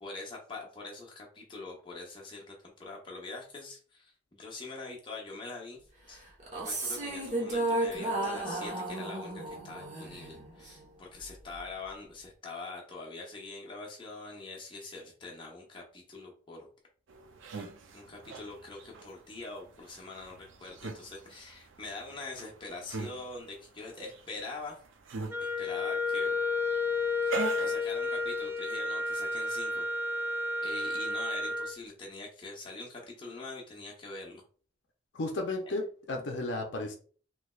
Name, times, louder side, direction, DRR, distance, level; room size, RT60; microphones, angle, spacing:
voice 1, 0.0-5.8 6.1-6.3 6.5-16.7 17.9-24.8 25.4-26.4 27.2-29.9 30.6-34.4 35.7-35.8, left 3 dB, 25° left, -2 dB, 0.7 m, -44 dB
sound 1, 6.4-10.9, right 2 dB, 35° right, 0.9 m, -33 dB
sound 2, 17.1-28.5, right 4 dB, 80° right, 0.5 m, -43 dB
Wind instrument woodwind instrument, 25.3-31.8, left 3 dB, 10° right, 0.4 m, -31 dB
voice 2, 35.1-37.0, left 2 dB, 65° left, 2 dB, 0.5 m, -33 dB
3.2 x 3.0 x 2.3 m, 0.43 s
head